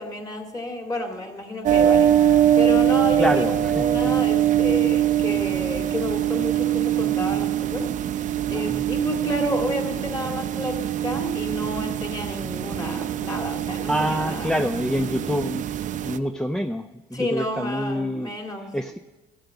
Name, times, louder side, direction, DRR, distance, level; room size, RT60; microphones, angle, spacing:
voice 1, 0.0-8.2 8.5-14.6 17.1-18.8, left 1 dB, 20° left, 3 dB, 2.1 m, -30 dB
sound 1, 1.6-16.2, right 11 dB, 50° right, 0.5 m, -23 dB
voice 2, 3.2-4.1 8.5-8.9 13.9-15.7 16.0-18.3 18.6-19.0, equal, 5° left, 6 dB, 0.4 m, -26 dB
13.5 x 7.7 x 7.0 m, 1.2 s
cardioid pair, 110°, 17 cm